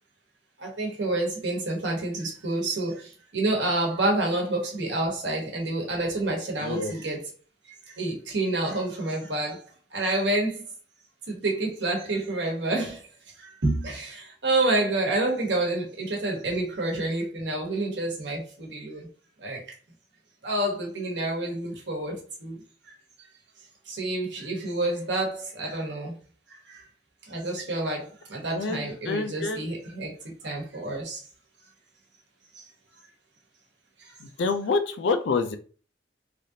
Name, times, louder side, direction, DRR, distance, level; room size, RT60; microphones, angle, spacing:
voice 1, 0.6-7.3 7.9-9.6 9.9-10.6 11.3-13.0 13.4-19.1 19.4-19.6 20.4-22.6 23.9-26.1 26.7-26.8 27.3-30.1 30.4-31.2, right 2 dB, 80° right, 1.1 m, -28 dB
voice 2, 6.6-6.9 28.5-29.6 34.2-35.6, left 4 dB, 80° left, 0.4 m, -27 dB
3.3 x 2.4 x 2.7 m
head